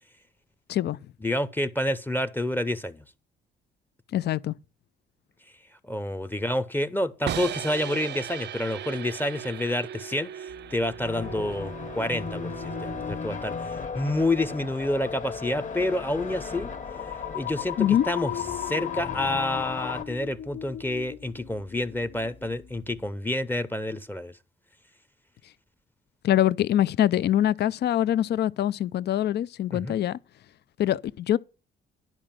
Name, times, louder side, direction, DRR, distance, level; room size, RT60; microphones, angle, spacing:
voice 1, 1.2-3.0 5.9-10.3 10.7-13.5 13.9-16.7 17.3-24.3 29.7-30.0, left 1 dB, 10° left, 0.7 m, -28 dB
voice 2, 4.1-4.5 17.8-18.1 26.2-30.2 30.8-31.4, left 11 dB, 55° left, 0.5 m, -24 dB
sound 1, 7.3-13.2, right 10 dB, 60° right, 0.5 m, -38 dB
sound 2, 10.5-23.1, left 8 dB, 80° left, 1.7 m, -43 dB
sound 3, 11.0-20.0, left 6 dB, 40° left, 1.4 m, -35 dB
10.5 x 5.0 x 7.4 m
cardioid pair, 90°, 20 cm